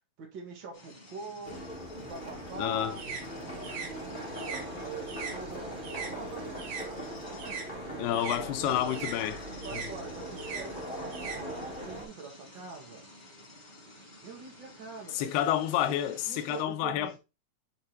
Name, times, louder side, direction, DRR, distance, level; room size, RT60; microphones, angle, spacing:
voice 1, 0.2-1.6 2.1-6.9 7.2-7.7 8.1-9.0 9.5-13.0 13.8-15.4 15.9-17.2, right 4 dB, 45° right, 1.6 m, -45 dB
sound 1, 0.7-16.6, left 1 dB, 25° left, 0.9 m, -52 dB
sound 2, 1.4-12.1, equal, 55° left, 0.5 m, -40 dB
sound 3, 2.1-6.9 7.2-12.0, right 5 dB, 70° right, 2.7 m, -42 dB
voice 2, 2.6-3.0 8.0-9.4 9.7-9.8 15.1-17.2, left 11 dB, 90° left, 2.7 m, -29 dB
7.1 x 3.5 x 4.4 m
omnidirectional pair, 4.5 m